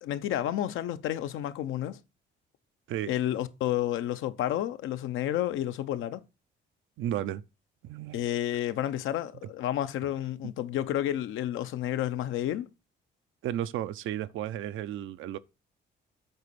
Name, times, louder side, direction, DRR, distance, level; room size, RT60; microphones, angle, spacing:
voice 1, 0.0-2.0 3.1-6.2 8.1-12.7, left 12 dB, 85° left, 0.7 m, -30 dB
voice 2, 7.0-7.4 7.8-8.2 13.4-15.4, right 11 dB, 80° right, 0.6 m, -33 dB
8.1 x 4.1 x 6.8 m
cardioid pair, 90°, 20 cm